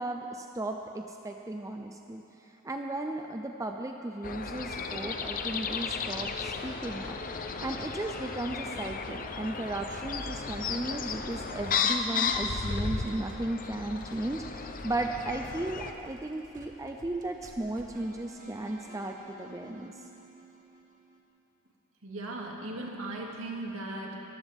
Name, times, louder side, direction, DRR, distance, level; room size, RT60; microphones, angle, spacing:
voice 1, 0.0-2.2 2.6-19.9, right 1 dB, 15° right, 3 dB, 0.5 m, -35 dB
sound 1, 4.2-15.9, left 5 dB, 40° left, 0.7 m, -34 dB
sound 2, 9.4-13.7 14.0-21.2, right 1 dB, 40° right, 1.6 m, -52 dB
voice 2, 22.0-24.2, right 2 dB, 65° right, -2 dB, 2.4 m, -38 dB
23.0 x 14.5 x 3.6 m, 2.9 s
head